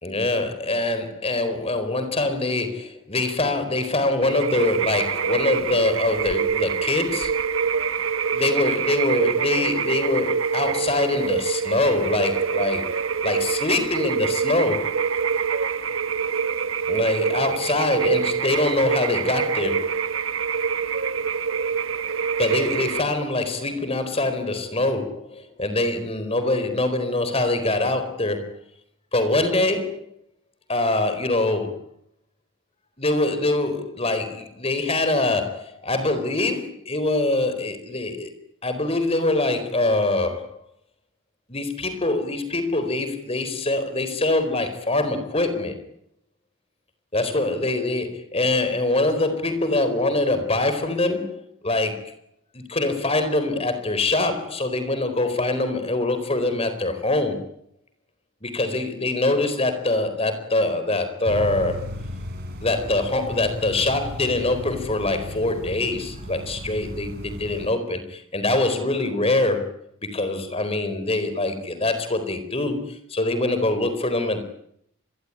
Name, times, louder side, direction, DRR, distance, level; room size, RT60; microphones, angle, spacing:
voice 1, 0.0-7.3 8.3-13.0 13.2-15.0 16.9-20.0 22.4-28.6 29.1-30.0 30.7-31.8 33.0-38.3 38.6-40.5 41.5-45.8 47.1-52.1 52.5-57.5 58.4-61.9 62.6-74.4, left 2 dB, 25° left, 9 dB, 4.3 m, -24 dB
sound 1, 4.2-23.0, right 6 dB, 65° right, 1.5 m, -25 dB
sound 2, 61.3-67.7, equal, 45° right, 6.1 m, -35 dB
27.0 x 22.0 x 9.8 m, 0.73 s
head